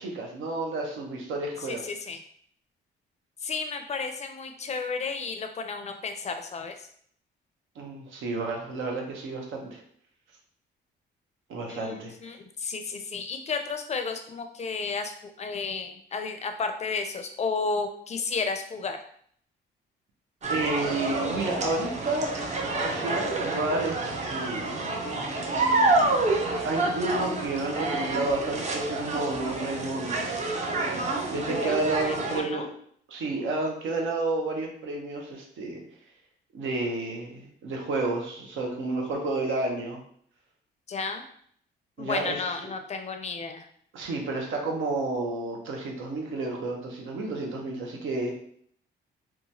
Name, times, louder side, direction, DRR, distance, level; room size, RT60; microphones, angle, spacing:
voice 1, 0.0-1.8 7.8-9.8 11.5-12.1 20.5-22.3 22.8-24.9 26.6-30.2 31.3-32.7 33.1-35.8 36.5-40.0 42.0-42.5 43.9-48.3, right 2 dB, 80° right, 1 dB, 0.8 m, -31 dB
voice 2, 1.6-2.2 3.4-6.8 11.7-19.0 31.6-32.7 40.9-41.2 42.0-43.7, left 4 dB, 35° left, 7 dB, 0.4 m, -32 dB
sound 1, 20.4-32.4, right 2 dB, 35° right, 0.6 m, -28 dB
2.9 x 2.3 x 2.6 m, 0.63 s
cardioid pair, 90°, 20 cm